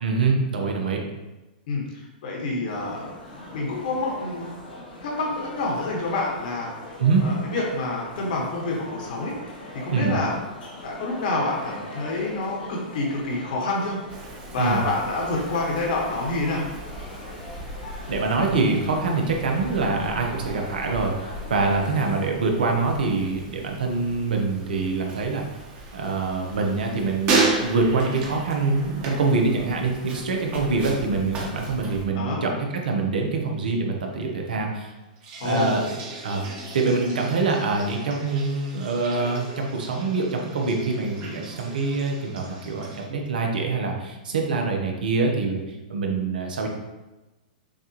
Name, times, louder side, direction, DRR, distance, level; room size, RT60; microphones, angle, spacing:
voice 1, 0.0-1.0 7.0-7.3 9.9-10.2 14.6-14.8 18.1-25.5 25.9-32.5 32.8-34.9 35.4-35.8 36.2-36.5 36.7-46.7, right 3 dB, 80° right, 1 dB, 0.9 m, -25 dB
voice 2, 1.7-4.6 5.0-7.0 7.2-10.3 10.8-14.0 14.5-16.7 32.1-32.4 35.4-35.9, left 2 dB, 65° left, -2 dB, 1.5 m, -28 dB
sound 1, 2.7-22.3, left 1 dB, 85° left, 1.3 m, -41 dB
Wind, 14.1-32.0, right 1 dB, 30° right, 1.1 m, -42 dB
sound 2, 25.7-30.2 30.4-31.0 35.2-43.1, right 3 dB, 45° right, 1.4 m, -32 dB
6.5 x 2.6 x 3.0 m, 1.1 s
hypercardioid pair, 125°, 5 cm